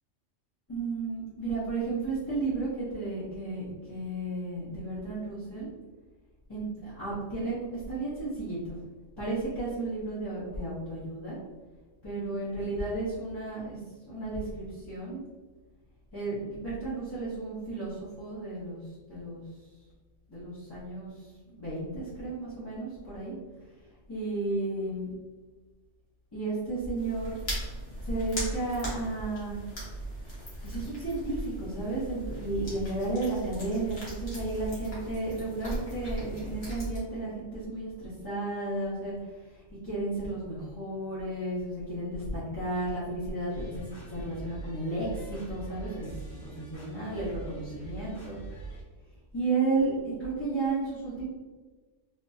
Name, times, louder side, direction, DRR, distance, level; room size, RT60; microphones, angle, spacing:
voice 1, 0.7-5.7 6.5-8.8 9.2-11.4 12.0-13.8 14.1-15.2 16.1-18.8 19.1-19.4 20.3-23.3 24.1-25.1 26.3-27.4 28.0-29.6 30.6-46.1 46.4-48.4 49.3-51.2, right 2 dB, 20° left, -11 dB, 0.9 m, -33 dB
sound 1, 26.9-37.0, right 1 dB, 55° left, 1.5 m, -38 dB
sound 2, 43.5-48.8, right 3 dB, 75° left, 1.8 m, -44 dB
3.6 x 2.9 x 2.7 m, 1.3 s
omnidirectional pair, 1.3 m